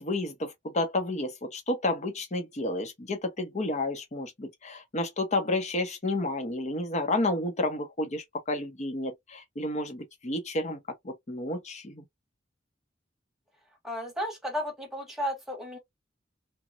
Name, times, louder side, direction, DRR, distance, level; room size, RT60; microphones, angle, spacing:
voice 1, 0.0-10.8 11.0-12.0, left 2 dB, 40° left, 0.8 m, -31 dB
voice 2, 13.8-15.8, equal, ahead, 1.2 m, -33 dB
2.9 x 2.2 x 2.5 m
head